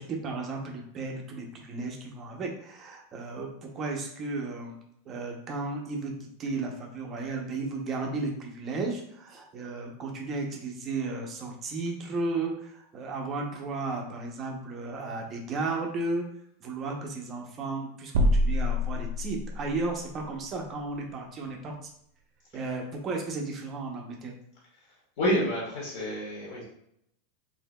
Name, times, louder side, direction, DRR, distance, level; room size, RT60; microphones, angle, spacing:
voice 1, 0.0-4.8 5.1-16.2 16.6-21.8 22.5-24.3, right 3 dB, 20° right, 1 dB, 0.7 m, -34 dB
sound 1, 18.1-19.7, left 1 dB, 80° right, 0.6 m, -25 dB
voice 2, 25.2-26.6, equal, 50° left, -6 dB, 1.6 m, -28 dB
6.4 x 2.7 x 2.2 m, 0.73 s
supercardioid pair, 175°, 0 cm